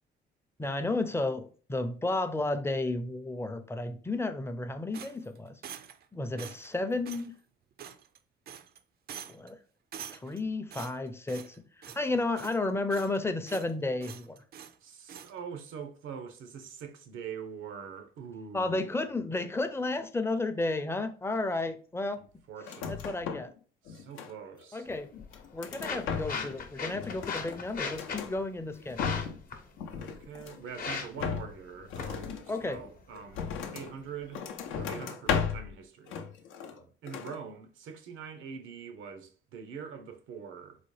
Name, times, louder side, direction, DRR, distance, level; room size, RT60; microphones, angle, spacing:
voice 1, 0.6-5.6 6.1-7.3 9.3-9.6 10.1-14.4 18.5-22.4 22.9-23.5 24.7-25.1 25.5-29.2 32.5-32.8, left 2 dB, 10° left, 0.4 m, -32 dB
sound 1, 4.9-6.1 6.4-6.7 7.1-7.3 7.8-8.2 8.5-8.8 9.1-9.5 9.9-10.4 10.7-11.6 11.8-12.1 12.4-13.2 13.5-13.7 14.0-14.8 15.1-15.3, right 9 dB, 55° right, 0.4 m, -45 dB
voice 2, 14.8-19.2 22.2-23.2 23.8-24.9 29.9-34.4 34.7-36.2 36.7-40.8, right 6 dB, 85° right, 0.7 m, -44 dB
sound 2, 22.6-23.6 23.9-24.6 25.1-26.6 26.9-28.3 28.8-29.5 29.8-30.7 31.2-33.9 34.3-35.7 36.1-36.8 37.1-37.4, left 6 dB, 85° left, 0.5 m, -36 dB
sound 3, 24.8-34.8, left 5 dB, 45° left, 0.7 m, -41 dB
4.0 x 2.2 x 3.1 m
cardioid pair, 90°, 20 cm